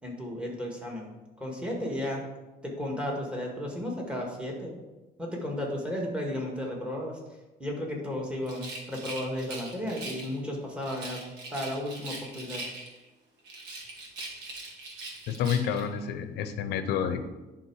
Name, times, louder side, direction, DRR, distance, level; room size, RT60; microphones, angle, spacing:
voice 1, 0.0-1.1 1.4-2.2 2.6-4.7 5.2-7.2 7.6-11.2 11.5-12.6, left 1 dB, 5° right, -1 dB, 1.9 m, -34 dB
Rattle, 8.4-10.4 10.8-13.1 13.4-15.9, right 2 dB, 90° right, 1.8 m, -41 dB
voice 2, 15.3-17.2, left 8 dB, 85° left, 10 dB, 0.7 m, -29 dB
11.0 x 3.6 x 4.7 m, 1.1 s
cardioid pair, 110°, 17 cm